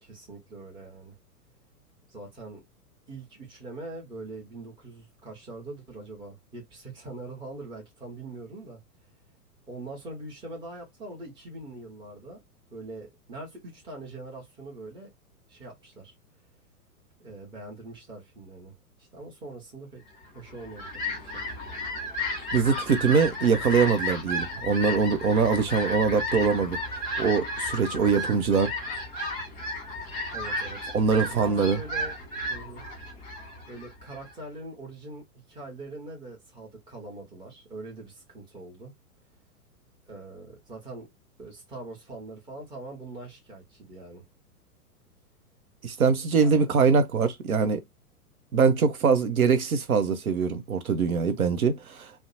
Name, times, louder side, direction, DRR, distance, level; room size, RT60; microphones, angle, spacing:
voice 1, 0.0-1.1 2.1-2.6 3.1-8.8 9.7-12.4 12.7-15.1 15.5-16.1 17.2-18.7 19.1-20.0 20.3-21.4 27.9-28.1 30.3-30.9 31.2-32.1 32.5-32.8 33.7-38.9 40.1-41.1 41.4-44.2 46.4-46.6, right 2 dB, 10° right, 0.9 m, -42 dB
Fowl, 20.4-34.3, left 1 dB, 20° left, 1.1 m, -33 dB
voice 2, 22.5-26.8 27.2-28.7 30.9-31.8 45.8-47.8 48.5-52.3, right 5 dB, 65° right, 0.7 m, -23 dB
2.6 x 2.1 x 2.6 m
figure-of-eight pair, 105°, 46 cm